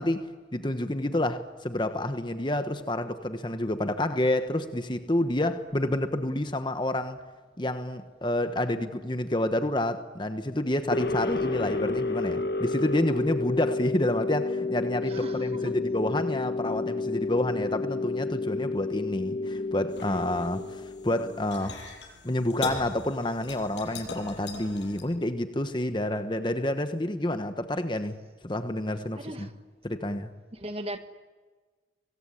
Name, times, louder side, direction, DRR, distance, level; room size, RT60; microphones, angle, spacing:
voice 1, 0.0-7.2 7.6-21.8 22.2-29.5 29.8-30.3, left 1 dB, 25° left, 1.2 m, -29 dB
sound 1, 10.9-21.8, left 3 dB, 60° left, 1.5 m, -31 dB
voice 2, 15.0-15.8 29.1-29.5 30.5-31.0, right 1 dB, 35° right, 1.5 m, -38 dB
sound 2, 19.9-25.0, left 3 dB, 85° left, 7.1 m, -41 dB
23.5 x 23.0 x 9.9 m
head